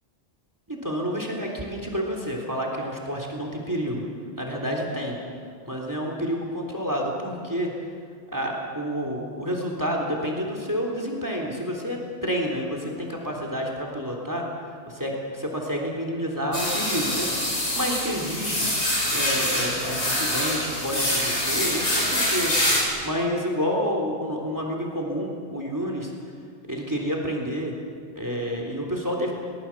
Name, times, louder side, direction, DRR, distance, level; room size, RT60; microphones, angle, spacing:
voice 1, 0.7-4.0 4.4-5.2 5.6-7.7 8.3-14.5 14.9-18.7 19.1-26.1 26.7-27.7 28.1-29.3, equal, 15° right, 0 dB, 3.4 m, -29 dB
sound 1, 16.5-22.8, left 1 dB, 65° left, 5.2 m, -25 dB
23.5 x 19.5 x 7.4 m, 2.2 s
omnidirectional pair, 1.2 m